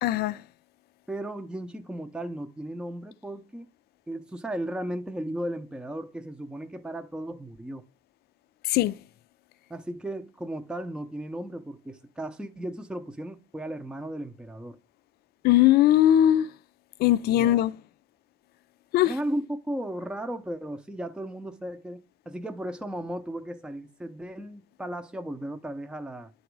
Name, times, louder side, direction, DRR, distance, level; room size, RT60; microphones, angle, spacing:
voice 1, 0.0-0.4 8.7-9.0 15.4-16.5 17.0-17.7 18.9-19.1, left 12 dB, 70° left, 0.4 m, -20 dB
voice 2, 1.1-3.7 4.1-7.8 9.7-14.8 17.3-17.6 19.1-26.3, right 1 dB, 5° right, 0.6 m, -35 dB
9.4 x 3.9 x 4.6 m
cardioid pair, 110°, 17 cm